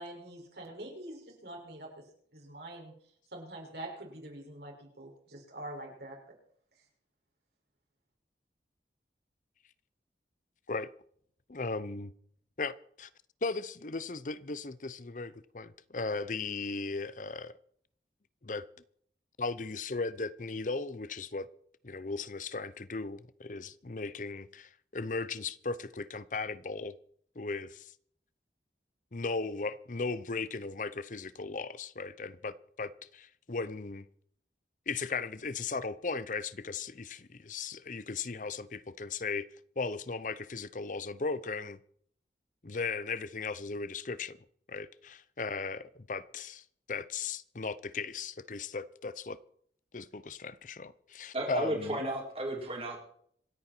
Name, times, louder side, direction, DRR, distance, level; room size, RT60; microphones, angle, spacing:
voice 1, 0.0-1.9 2.3-2.9 3.3-6.2, right 1 dB, 70° right, 6.0 m, -45 dB
voice 2, 11.5-12.1 12.6-13.1 13.4-17.6 18.4-18.7 19.4-21.5 21.8-26.9 27.4-27.9 29.1-34.1 34.9-39.5 39.8-41.8 42.6-44.4 44.7-49.4 49.9-52.0, left 4 dB, 45° left, 0.7 m, -37 dB
voice 3, 51.3-53.0, right 1 dB, 35° right, 4.1 m, -33 dB
26.5 x 9.1 x 4.5 m
head